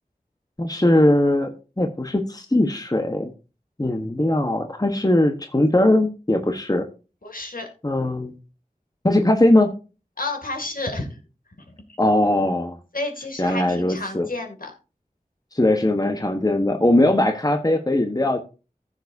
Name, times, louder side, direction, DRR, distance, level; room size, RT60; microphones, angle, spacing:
voice 1, 0.6-3.3 3.8-6.9 7.8-8.3 9.0-9.7 12.0-12.8 13.4-14.3 15.5-18.4, left 1 dB, 25° left, 5 dB, 1.1 m, -20 dB
voice 2, 7.2-7.7 10.2-11.2 11.6-11.8 12.9-14.7, left 2 dB, 65° left, 3 dB, 2.4 m, -31 dB
15.0 x 7.1 x 2.7 m, 0.32 s
wide cardioid pair, 50°, 15 cm